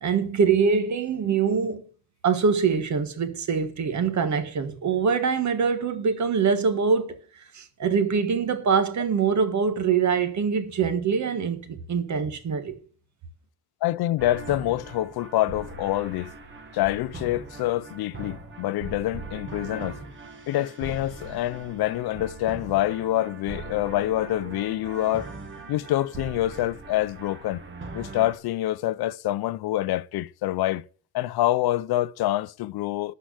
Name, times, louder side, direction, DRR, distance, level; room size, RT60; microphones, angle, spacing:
voice 1, 0.0-1.8 2.2-7.2 7.5-12.7, right 6 dB, 50° right, 1.5 m, -24 dB
voice 2, 13.8-16.3 16.7-20.0 20.5-25.3 25.7-27.6 27.9-30.8 31.1-33.1, left 15 dB, 80° left, 0.6 m, -26 dB
sound 1, 14.2-28.3, right 3 dB, 30° right, 1.7 m, -40 dB
12.5 x 4.7 x 7.9 m
wide cardioid pair, 165°, 37 cm